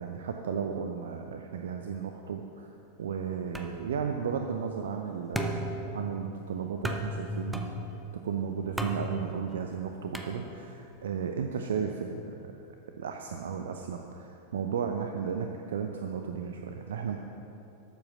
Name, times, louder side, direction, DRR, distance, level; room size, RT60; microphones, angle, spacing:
voice 1, 0.0-2.7 3.0-7.7 8.2-12.5 13.0-17.2, right 6 dB, 65° right, 4 dB, 0.6 m, -34 dB
sound 1, 3.5-10.9, equal, 5° right, 0.9 m, -38 dB
13.0 x 7.8 x 6.1 m, 2.8 s
figure-of-eight pair, 90°, 0 cm